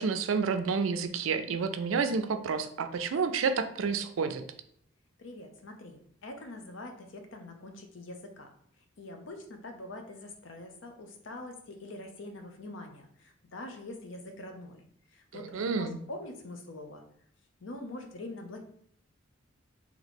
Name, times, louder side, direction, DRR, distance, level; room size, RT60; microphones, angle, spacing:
voice 1, 0.0-4.4 15.3-16.0, right 5 dB, 80° right, 8 dB, 0.4 m, -30 dB
voice 2, 5.2-8.5 9.0-14.8 15.1-17.0 17.6-18.7, left 2 dB, 65° left, 4 dB, 0.7 m, -44 dB
3.0 x 2.9 x 4.2 m, 0.66 s
head